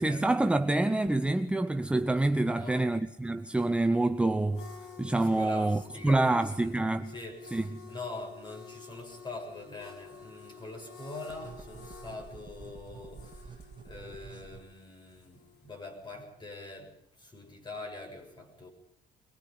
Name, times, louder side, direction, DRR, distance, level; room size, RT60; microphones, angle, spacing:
voice 1, 0.0-4.7 5.0-7.1 7.5-7.8, right 2 dB, 5° right, 0.7 m, -27 dB
voice 2, 2.5-2.9 5.4-6.7 7.1-13.3 13.8-15.4 15.6-16.9 17.2-18.7, left 2 dB, 25° left, 7.4 m, -43 dB
sound 1, 3.6-16.0, left 6 dB, 90° left, 3.4 m, -52 dB
sound 2, 9.5-14.6, right 5 dB, 25° right, 1.4 m, -50 dB
23.0 x 22.0 x 5.7 m
cardioid pair, 110°, 17 cm